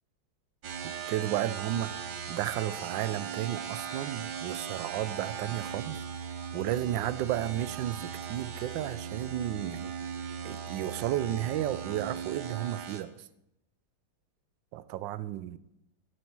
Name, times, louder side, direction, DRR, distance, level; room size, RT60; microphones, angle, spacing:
sound 1, 0.6-13.0, right 7 dB, 55° right, 1.5 m, -38 dB
voice 1, 0.8-1.9 2.3-6.0 6.5-9.9 10.4-13.3 14.7-15.6, right 12 dB, 70° right, 15 dB, 1.2 m, -33 dB
15.0 x 9.5 x 4.6 m, 0.84 s
omnidirectional pair, 2.4 m